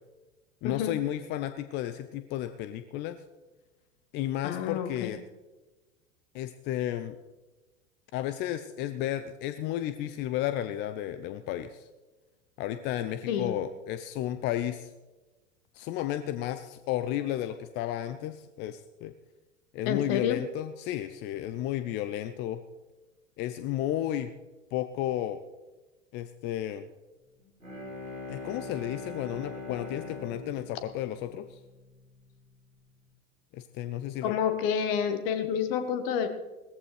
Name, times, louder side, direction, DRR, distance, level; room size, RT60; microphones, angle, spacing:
voice 1, 0.6-3.2 4.1-5.2 6.3-7.2 8.1-11.9 12.6-14.9 15.7-19.1 19.7-22.6 23.4-24.3 24.7-25.4 26.1-26.9 28.3-31.6 33.5-34.3, left 12 dB, 30° left, 10 dB, 0.5 m, -33 dB
voice 2, 4.4-5.1 13.3-13.5 19.9-20.4 34.2-36.3, left 8 dB, 45° left, 8 dB, 1.5 m, -29 dB
Bowed string instrument, 27.4-32.1, left 3 dB, 90° right, 3.1 m, -42 dB
18.5 x 14.0 x 3.3 m, 1.2 s
figure-of-eight pair, 85°, 39 cm